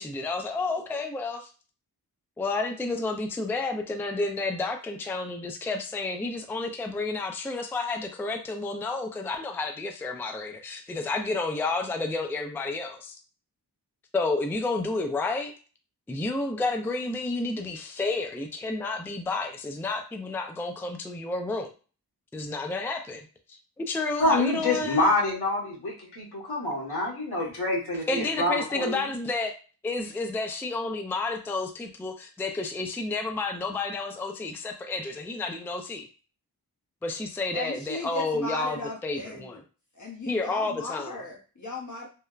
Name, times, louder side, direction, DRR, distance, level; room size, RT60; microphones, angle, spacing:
voice 1, 0.0-1.5 2.4-13.2 14.1-15.5 16.1-21.7 22.3-23.3 23.8-25.1 28.1-29.5 29.8-36.1 37.0-39.6 40.3-41.2, left 3 dB, 5° left, 4 dB, 0.3 m, -30 dB
voice 2, 24.2-29.0, left 2 dB, 75° left, -4 dB, 1.3 m, -26 dB
voice 3, 37.5-39.6 39.9-42.1, left 2 dB, 50° left, -3 dB, 0.7 m, -36 dB
3.2 x 2.0 x 2.3 m, 0.36 s
wide cardioid pair, 60°, 39 cm